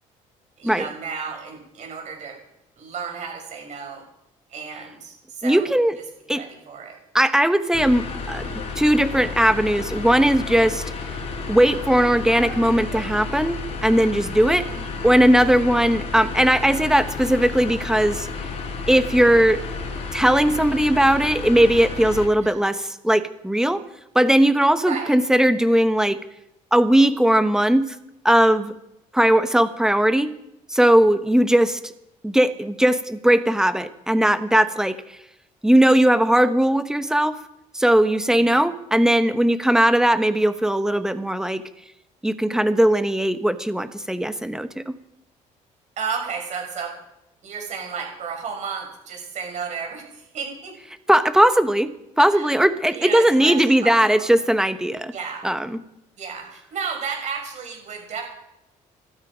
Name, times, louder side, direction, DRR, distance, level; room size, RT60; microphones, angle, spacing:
voice 1, 0.6-2.4 2.8-4.0 4.5-5.7 6.3-7.0 14.7-15.0 22.4-22.7 24.8-25.2 38.2-38.6 46.0-47.0 47.4-50.7 52.3-52.6 52.9-54.3 55.1-55.5 56.2-58.3, right 6 dB, 60° right, 2 dB, 6.7 m, -33 dB
voice 2, 5.4-5.9 6.3-6.4 7.1-10.8 11.5-14.7 15.0-18.3 18.9-19.6 20.1-23.8 24.1-26.2 26.7-27.9 28.2-28.7 29.1-30.3 30.7-31.8 32.2-35.0 35.6-37.4 37.7-41.6 42.2-44.8 51.1-51.9 52.2-55.1 55.4-55.8, right 1 dB, 5° right, 11 dB, 1.2 m, -18 dB
sound 1, 7.7-22.3, left 4 dB, 50° left, 4.5 m, -32 dB
20.0 x 13.0 x 5.1 m, 0.85 s
cardioid pair, 95°, 14 cm